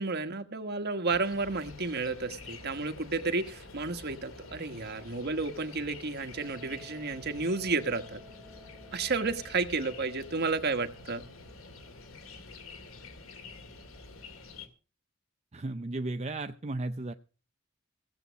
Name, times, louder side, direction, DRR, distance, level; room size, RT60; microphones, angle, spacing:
voice 1, 0.0-8.2 8.9-11.2, right 3 dB, 50° right, 8 dB, 1.4 m, -32 dB
sound 1, 1.1-14.7, left 3 dB, 80° left, 2.3 m, -48 dB
Wind instrument woodwind instrument, 6.3-11.9, left 1 dB, 15° right, 2.1 m, -55 dB
voice 2, 15.5-17.1, right 2 dB, 30° right, 8 dB, 0.6 m, -34 dB
16.5 x 8.1 x 6.3 m, 0.36 s
head